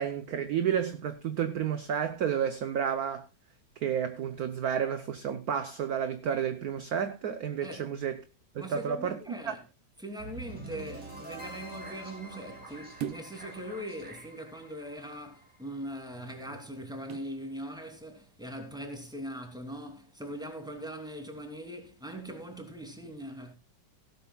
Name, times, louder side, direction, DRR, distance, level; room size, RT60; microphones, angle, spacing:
voice 1, 0.0-3.3 3.8-8.2 8.5-9.5, right 8 dB, 60° right, 1.2 m, -31 dB
voice 2, 8.6-9.6 10.0-23.5, equal, ahead, 2.7 m, -41 dB
sound 1, 10.2-16.3, right 1 dB, 30° right, 6.5 m, -46 dB
sound 2, 13.0-13.5 16.1-17.4 17.9-18.1, right 9 dB, 80° right, 1.6 m, -41 dB
16.5 x 12.5 x 2.3 m
omnidirectional pair, 2.2 m